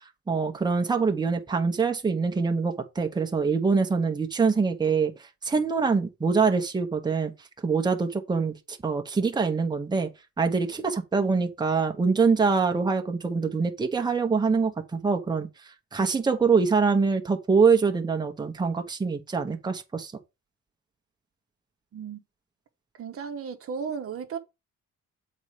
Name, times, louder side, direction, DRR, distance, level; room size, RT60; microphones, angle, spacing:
voice 1, 0.3-5.1 5.4-7.3 7.6-10.1 10.4-15.5 15.9-20.1, right 5 dB, 15° right, 1.0 m, -24 dB
voice 2, 21.9-22.2 23.0-24.4, right 6 dB, 50° right, 1.0 m, -34 dB
8.0 x 4.3 x 4.9 m
cardioid pair, 145°, 30 cm